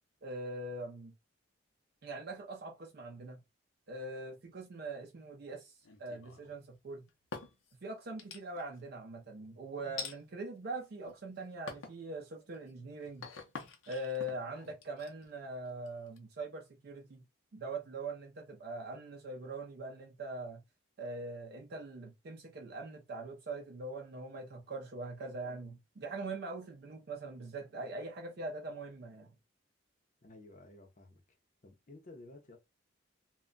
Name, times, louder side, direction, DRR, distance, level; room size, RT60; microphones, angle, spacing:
voice 1, 0.2-1.1 2.0-3.4 3.9-5.7 6.0-7.0 7.8-13.3 13.9-17.2 17.5-20.6 21.0-29.3, right 2 dB, 50° right, 0.4 m, -42 dB
sound 1, 5.8-6.6 7.1-7.7 8.2-8.8 10.0-10.2 10.8-11.3 11.7-12.0 12.5-16.2, left 5 dB, 80° left, 0.6 m, -46 dB
voice 2, 30.2-31.2 31.6-32.6, left 2 dB, 40° left, 0.6 m, -54 dB
2.2 x 2.1 x 3.7 m
head